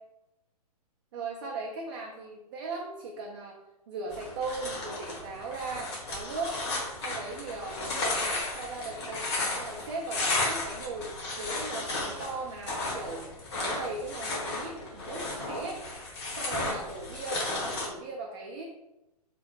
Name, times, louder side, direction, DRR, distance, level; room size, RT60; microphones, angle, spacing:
voice 1, 1.1-3.6 3.9-6.6 7.0-9.3 9.5-15.8 16.3-18.6, right 3 dB, 35° right, -1 dB, 0.4 m, -38 dB
sound 1, 4.1-17.9, left 2 dB, 45° left, 1.0 m, -34 dB
3.0 x 2.0 x 4.1 m, 0.94 s
figure-of-eight pair, 115°, 20 cm